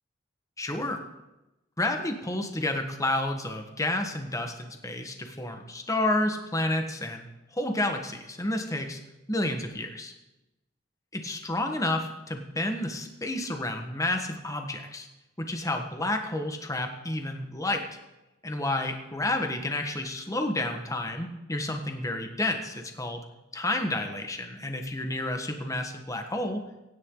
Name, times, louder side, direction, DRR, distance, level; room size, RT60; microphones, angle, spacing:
voice 1, 0.6-1.0 1.8-7.3 7.5-9.0 9.3-10.1 11.1-15.1 15.4-17.8 18.4-23.2 23.5-26.6, left 1 dB, 20° left, 4 dB, 1.4 m, -30 dB
24.5 x 10.0 x 3.9 m, 0.99 s
head